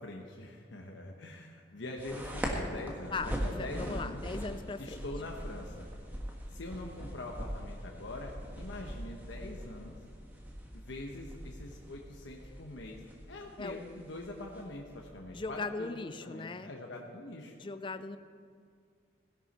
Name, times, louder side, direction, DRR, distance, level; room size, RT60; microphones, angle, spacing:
voice 1, 0.0-4.2 4.8-5.9 6.5-10.0 10.7-13.0 13.3-17.6, left 2 dB, 80° left, 0 dB, 1.1 m, -44 dB
sound 1, 2.0-15.5, equal, 10° right, 1.4 m, -41 dB
voice 2, 3.1-5.0 13.6-13.8 15.3-16.7 17.6-18.2, left 3 dB, 25° left, 11 dB, 0.4 m, -39 dB
17.0 x 11.0 x 4.2 m, 2.2 s
head